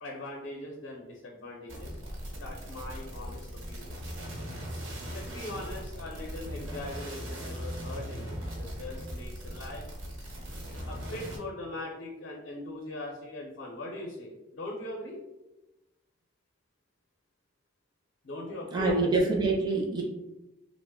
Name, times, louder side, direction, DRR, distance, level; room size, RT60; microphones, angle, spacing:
voice 1, 0.0-2.0 2.4-4.1 5.1-9.8 10.9-15.2 18.2-19.2, left 1 dB, 70° left, -1 dB, 0.5 m, -40 dB
sound 1, 1.7-11.4, equal, 75° right, 0.9 m, -39 dB
voice 2, 18.7-20.0, right 3 dB, 20° right, -2 dB, 0.4 m, -26 dB
2.9 x 2.0 x 3.4 m, 0.98 s
head